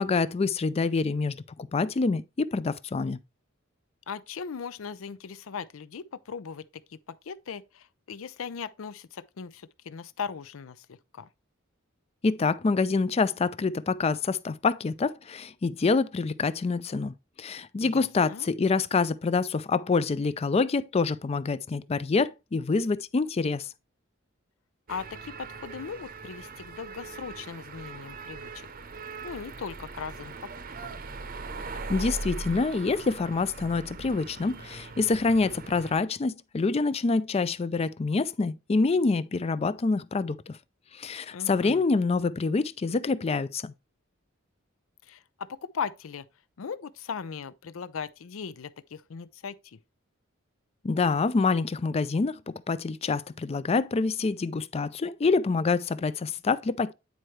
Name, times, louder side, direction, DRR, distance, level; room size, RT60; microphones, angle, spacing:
voice 1, 0.0-3.2 12.2-23.7 31.9-40.6 41.0-43.7 50.8-56.9, left 4 dB, 30° left, 0.4 m, -26 dB
voice 2, 4.1-11.3 17.8-18.5 24.9-28.7 29.2-30.5 30.8-31.0 41.3-41.8 45.0-46.3 46.6-49.8, left 6 dB, 90° left, 0.5 m, -38 dB
sound 1, 24.9-36.0, right 3 dB, 45° right, 0.7 m, -40 dB
9.3 x 4.5 x 3.2 m
head